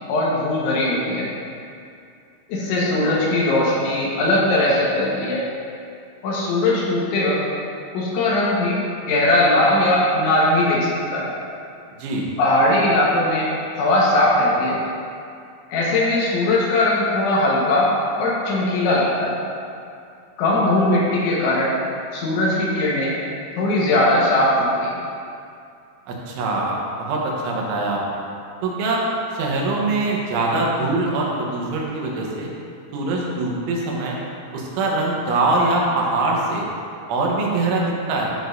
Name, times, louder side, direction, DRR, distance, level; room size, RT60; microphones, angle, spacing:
voice 1, 0.1-1.3 2.5-5.4 6.2-7.4 7.9-11.3 12.4-13.5 13.8-14.8 15.7-19.4 20.4-21.7 22.1-23.1 23.6-25.0, left 1 dB, 80° left, -5 dB, 3.6 m, -19 dB
voice 2, 26.1-28.2 28.6-29.0 29.3-32.5 32.9-34.2 34.5-36.7 37.1-38.3, right 2 dB, 85° right, -2 dB, 3.6 m, -23 dB
13.0 x 6.3 x 2.7 m, 2.5 s
omnidirectional pair, 5.4 m